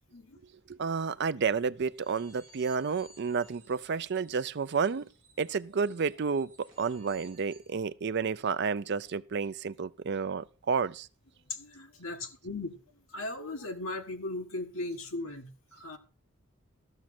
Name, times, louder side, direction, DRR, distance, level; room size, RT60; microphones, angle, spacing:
voice 1, 0.7-5.1 5.4-11.1, right 5 dB, 50° right, 0.5 m, -31 dB
sound 1, 2.0-7.8, right 2 dB, 25° right, 3.4 m, -59 dB
voice 2, 11.5-12.8 13.1-16.0, left 2 dB, 70° left, 1.6 m, -38 dB
13.5 x 6.3 x 5.9 m
head